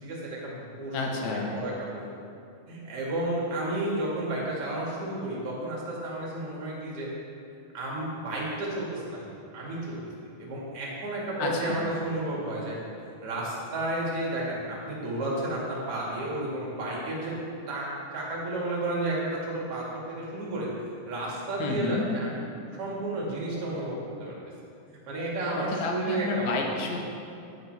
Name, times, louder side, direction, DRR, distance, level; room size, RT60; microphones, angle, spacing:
voice 1, 0.0-2.0 2.7-7.1 7.7-9.2 9.5-10.0 10.4-12.8 13.2-17.3 17.7-17.9 18.1-20.7 21.1-22.4 22.8-24.3 25.1-26.6, right 2 dB, 50° right, -5 dB, 2.7 m, -32 dB
voice 2, 0.9-1.5 11.4-11.8 21.6-22.1 25.6-27.0, left 4 dB, 65° left, 0 dB, 2.2 m, -30 dB
10.5 x 9.6 x 3.3 m, 2.7 s
omnidirectional pair, 3.7 m